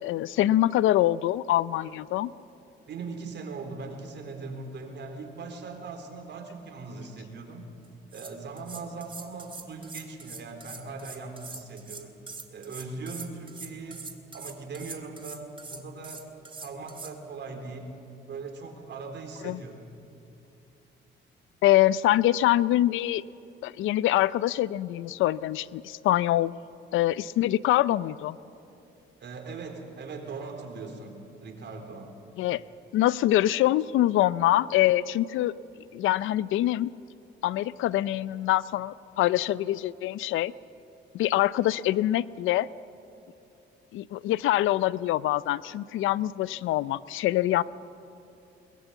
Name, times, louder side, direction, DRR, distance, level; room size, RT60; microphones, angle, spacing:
voice 1, 0.0-2.3 19.4-19.6 21.6-23.2 23.6-26.5 26.9-28.4 32.4-32.6 32.9-35.5 35.9-36.9 37.4-40.5 41.1-42.7 43.9-47.6, left 14 dB, 85° left, 19 dB, 0.5 m, -24 dB
voice 2, 2.9-7.7 8.1-12.1 12.5-14.0 14.3-16.3 16.6-17.9 18.3-19.9 29.2-32.2, right 4 dB, 60° right, 4 dB, 4.0 m, -40 dB
sound 1, 7.8-17.1, right 4 dB, 25° right, 2.1 m, -43 dB
22.0 x 21.5 x 8.1 m, 2.7 s
cardioid pair, 90°, 20 cm